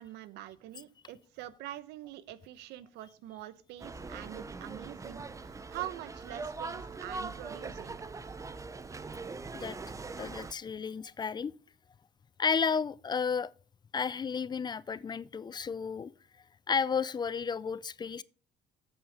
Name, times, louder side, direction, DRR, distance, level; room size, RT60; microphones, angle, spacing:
voice 1, 0.0-8.0, right 13 dB, 90° right, 0.8 m, -45 dB
sound 1, 3.8-10.5, right 4 dB, 20° right, 0.6 m, -41 dB
voice 2, 10.2-11.5 12.4-13.5 13.9-16.1 16.7-18.2, left 6 dB, 25° left, 0.4 m, -32 dB
8.1 x 7.4 x 4.9 m
cardioid pair, 110°, 17 cm